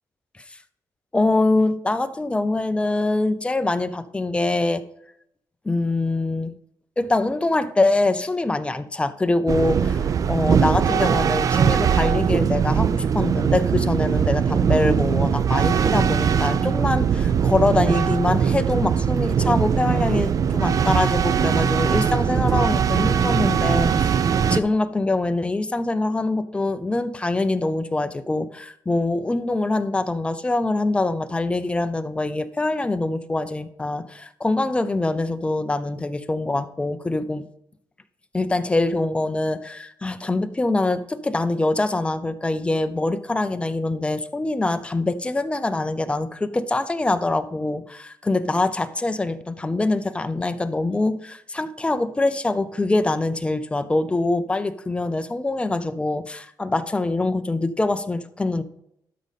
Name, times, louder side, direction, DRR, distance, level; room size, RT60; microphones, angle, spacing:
voice 1, 1.1-4.8 5.6-6.5 7.0-37.5 38.3-58.6, left 2 dB, 15° left, 11 dB, 0.6 m, -24 dB
sound 1, 9.5-24.6, right 7 dB, 50° right, 0.4 m, -21 dB
12.5 x 5.2 x 4.1 m, 0.74 s
cardioid pair, 115°, 7 cm